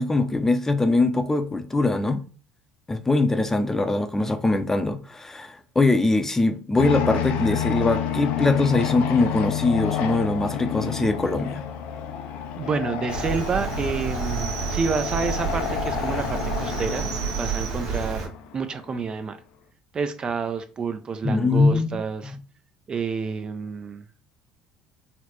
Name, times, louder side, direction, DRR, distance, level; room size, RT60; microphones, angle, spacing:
voice 1, 0.0-2.2 2.9-11.6 21.2-22.0, left 2 dB, 15° left, 0.6 m, -22 dB
sound 1, 6.8-18.9, left 9 dB, 65° left, 0.4 m, -29 dB
voice 2, 12.6-19.4 19.9-22.4 22.9-24.0, right 5 dB, 35° right, 0.4 m, -29 dB
Cricket, 13.1-18.3, right 5 dB, 70° right, 1.0 m, -29 dB
4.0 x 2.1 x 3.0 m
hypercardioid pair, 75°, 3 cm